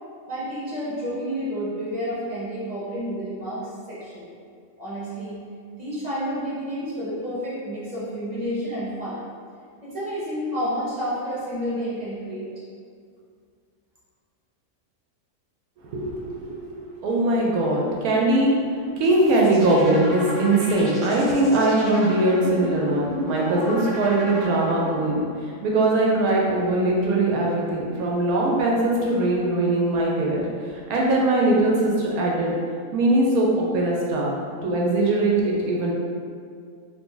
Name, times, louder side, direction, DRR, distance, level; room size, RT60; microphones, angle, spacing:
voice 1, 0.3-4.3 4.8-5.4 5.7-9.2 9.8-12.5, equal, 35° right, -10 dB, 0.7 m, -30 dB
voice 2, 15.8-18.5 18.9-32.5 32.9-34.3 34.6-35.9, right 2 dB, 70° right, -3 dB, 0.9 m, -21 dB
sound 1, 19.0-25.2, left 1 dB, 25° left, 0.5 m, -34 dB
2.7 x 2.6 x 3.6 m, 2.2 s
omnidirectional pair, 1.8 m